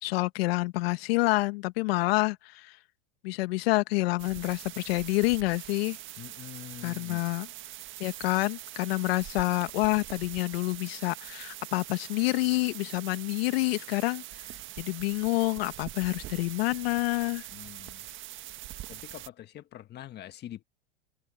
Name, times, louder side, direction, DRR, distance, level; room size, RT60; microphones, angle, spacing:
voice 1, 0.0-2.8 3.2-6.0 6.8-7.5 8.0-17.5, left 22 dB, 65° left, 1.6 m, -28 dB
sound 1, 4.2-19.3, right 14 dB, 35° right, 1.6 m, -43 dB
voice 2, 6.2-7.3 17.5-18.1 18.9-20.6, left 12 dB, 30° left, 1.5 m, -45 dB
open air
hypercardioid pair, 120°, 33 cm